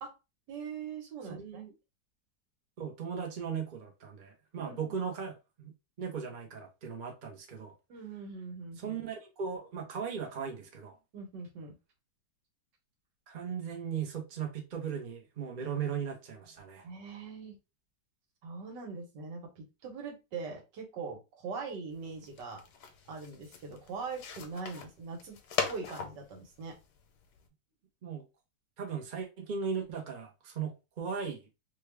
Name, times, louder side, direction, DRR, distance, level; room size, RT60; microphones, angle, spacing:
voice 1, 0.5-1.6 4.6-5.0 7.9-9.0 11.1-11.8 16.8-17.6 18.4-22.6 23.1-25.4 25.7-26.7, right 4 dB, 85° right, 1.7 m, -42 dB
voice 2, 1.4-1.7 2.8-5.7 6.0-7.7 8.8-11.0 13.3-16.9 28.0-28.2 28.8-31.5, right 6 dB, 40° right, 0.7 m, -37 dB
sound 1, 21.9-27.5, left 6 dB, 70° left, 1.3 m, -40 dB
3.3 x 2.3 x 3.3 m
omnidirectional pair, 1.8 m